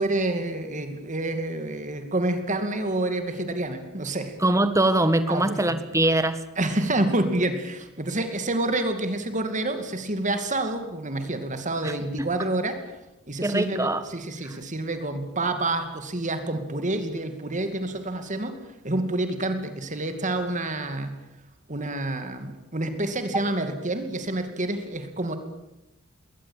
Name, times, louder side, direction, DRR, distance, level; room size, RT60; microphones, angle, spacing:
voice 1, 0.0-4.3 5.3-5.8 6.6-12.8 13.3-18.6 18.8-21.2 21.7-25.4, right 2 dB, 35° right, 8 dB, 2.5 m, -28 dB
voice 2, 4.4-6.4 11.8-12.3 13.4-14.0 14.4-14.5, right 1 dB, 15° right, 11 dB, 1.7 m, -23 dB
22.0 x 18.5 x 9.0 m, 0.94 s
head